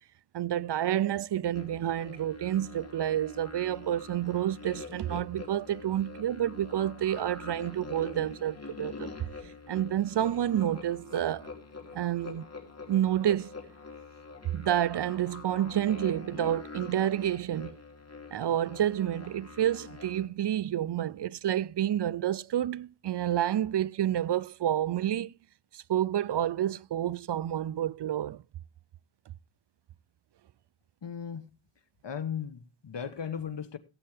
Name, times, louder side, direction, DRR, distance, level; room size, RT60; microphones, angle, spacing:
voice 1, 0.3-9.1 9.7-11.5 11.9-12.5 12.9-13.5 14.5-17.8 18.3-25.3 25.7-28.4, right 11 dB, 60° right, 0.5 m, -29 dB
sound 1, 1.5-20.3, left 4 dB, 30° left, 2.8 m, -45 dB
voice 2, 31.0-31.5 32.0-33.8, left 7 dB, 60° left, 1.5 m, -36 dB
17.0 x 8.6 x 3.3 m
wide cardioid pair, 80°, 48 cm